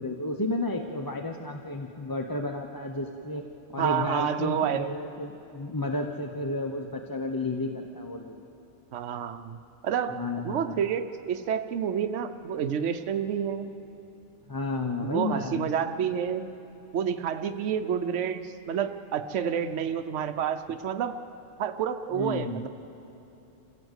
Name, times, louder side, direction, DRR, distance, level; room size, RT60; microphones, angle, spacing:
voice 1, 0.0-8.4 10.1-10.8 14.5-15.7 22.1-22.7, left 2 dB, 20° left, 3 dB, 0.8 m, -32 dB
voice 2, 3.8-4.9 8.9-9.6 9.8-13.7 15.0-16.5 16.9-21.2 21.6-22.7, right 8 dB, 70° right, 8 dB, 1.1 m, -29 dB
27.0 x 16.5 x 8.1 m, 2.9 s
omnidirectional pair, 1.3 m